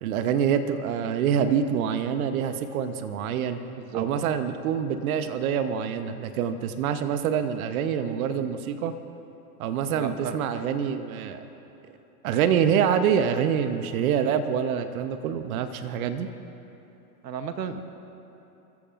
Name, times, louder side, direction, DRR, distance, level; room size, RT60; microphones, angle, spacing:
voice 1, 0.0-3.6 3.9-8.9 9.6-11.4 12.2-16.3, right 8 dB, 60° right, 9 dB, 1.1 m, -26 dB
voice 2, 3.7-4.1 9.9-10.4 17.2-17.8, right 7 dB, 85° right, 9 dB, 1.1 m, -33 dB
28.5 x 14.5 x 2.6 m, 3.0 s
hypercardioid pair, 110°, 48 cm